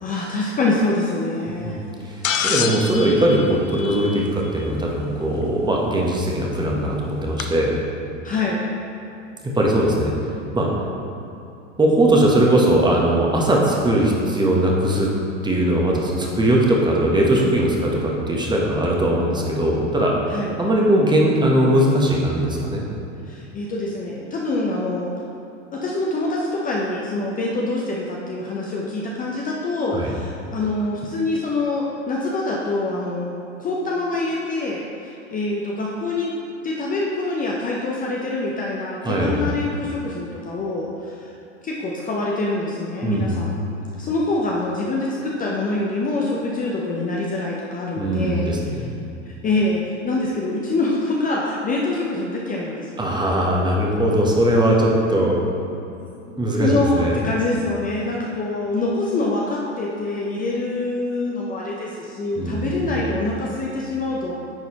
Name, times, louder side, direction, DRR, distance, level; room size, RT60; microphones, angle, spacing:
voice 1, 0.0-1.8 8.2-8.6 20.3-20.6 23.3-25.1 25.7-36.3 36.6-41.3 41.6-43.6 44.0-48.5 49.4-53.0 56.3-64.3, left 2 dB, 20° left, -3 dB, 0.6 m, -25 dB
sound 1, 2.2-4.5 6.1-6.2 7.4-7.5, left 7 dB, 85° left, 0.5 m, -26 dB
voice 2, 2.4-7.7 9.5-10.1 10.5-10.7 11.8-15.1 15.4-20.1 20.6-22.9 29.9-30.1 39.0-39.5 43.0-43.5 48.0-48.9 53.0-55.4 56.4-57.2 62.4-63.0, right 1 dB, 10° right, -2 dB, 1.0 m, -20 dB
9.5 x 4.0 x 2.9 m, 2.8 s
hypercardioid pair, 90°, 38 cm